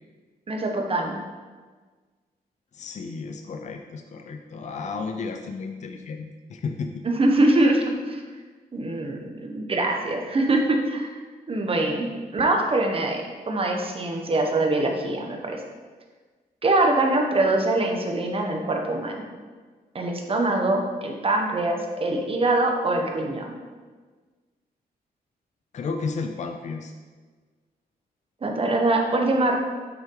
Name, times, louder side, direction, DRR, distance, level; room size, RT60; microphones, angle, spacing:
voice 1, 0.5-1.2 7.0-8.2 8.7-11.1 11.5-15.6 16.6-19.2 19.9-23.5 28.4-29.6, right 2 dB, 35° right, 2 dB, 1.0 m, -23 dB
voice 2, 2.7-7.0 25.7-26.9, left 4 dB, 45° left, 5 dB, 0.5 m, -33 dB
7.4 x 5.9 x 3.8 m, 1.4 s
wide cardioid pair, 145°, 17 cm